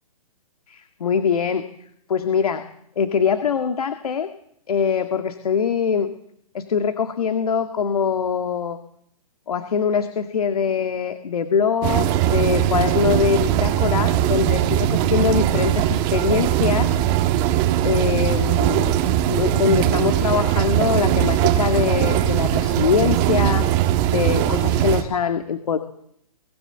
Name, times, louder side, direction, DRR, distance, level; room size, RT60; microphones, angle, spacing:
voice 1, 0.7-1.7 2.1-2.6 3.0-4.3 4.7-6.1 6.5-8.8 9.5-17.0 17.8-19.0 19.3-23.7 24.1-25.8, left 6 dB, 75° left, 8 dB, 1.9 m, -23 dB
sound 1, 11.8-25.0, right 12 dB, 25° right, 1.5 m, -20 dB
24.0 x 17.0 x 7.9 m, 0.72 s
hypercardioid pair, 160°, 19 cm